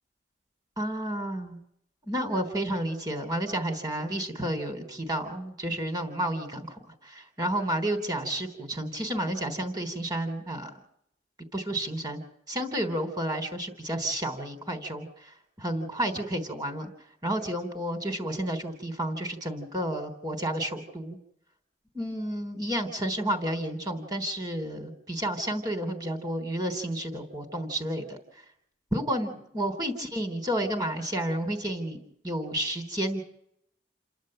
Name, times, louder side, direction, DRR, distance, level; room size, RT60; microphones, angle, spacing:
voice 1, 0.8-1.6 2.1-10.7 11.5-12.2 12.5-16.9 17.2-21.2 21.9-28.2 28.9-32.0 32.2-33.2, right 1 dB, 20° right, 6 dB, 3.6 m, -31 dB
29.5 x 11.5 x 7.8 m, 0.71 s
head